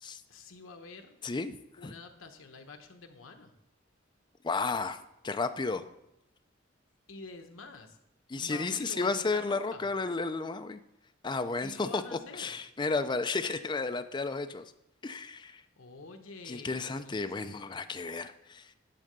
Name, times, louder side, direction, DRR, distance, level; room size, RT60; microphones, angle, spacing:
voice 1, 0.3-1.2 1.8-3.5 7.1-8.0 8.3-9.9 11.6-12.6 15.8-17.7, left 3 dB, 80° left, 5 dB, 1.0 m, -47 dB
voice 2, 1.2-1.5 1.8-1.9 4.4-5.0 5.2-5.9 8.3-10.8 11.2-14.6 15.0-15.6 16.5-18.7, left 3 dB, 20° left, 9 dB, 0.4 m, -33 dB
11.0 x 3.8 x 6.6 m, 0.84 s
head